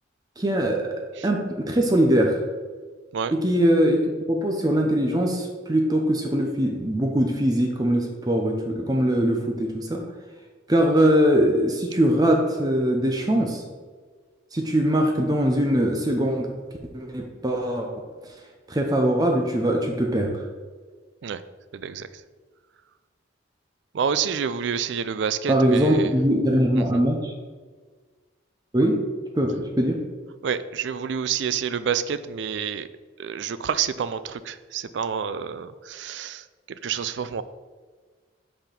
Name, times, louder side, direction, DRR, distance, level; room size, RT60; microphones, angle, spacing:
voice 1, 0.4-0.8 1.2-2.4 3.3-4.0 4.3-10.0 10.7-13.6 14.5-16.5 16.9-17.9 18.7-20.3 25.5-27.3 28.7-29.0 29.3-30.0, equal, 20° right, 2 dB, 0.6 m, -21 dB
voice 2, 21.7-22.1 23.9-26.1 26.8-27.0 30.4-32.9 33.2-36.4 36.8-37.4, right 7 dB, 70° right, 14 dB, 0.4 m, -28 dB
5.5 x 4.3 x 5.8 m, 1.5 s
head